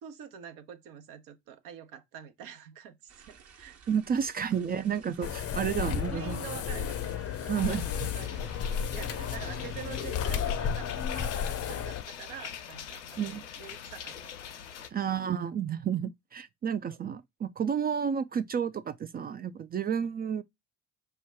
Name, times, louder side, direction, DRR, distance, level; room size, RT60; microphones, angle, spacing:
voice 1, 0.0-3.8 4.1-4.2 4.5-4.6 6.1-8.5 8.9-14.9 16.9-17.0 20.0-20.1, right 9 dB, 65° right, 0.9 m, -47 dB
sound 1, 3.1-10.4, right 6 dB, 45° right, 1.1 m, -55 dB
voice 2, 3.9-6.4 7.5-8.1 13.2-13.4 14.9-20.4, right 8 dB, 25° right, 0.4 m, -31 dB
sound 2, 5.2-12.0, left 8 dB, 45° left, 0.6 m, -33 dB
sound 3, 7.6-14.9, left 8 dB, 85° left, 0.6 m, -43 dB
5.0 x 2.2 x 3.4 m
figure-of-eight pair, 50°, 35 cm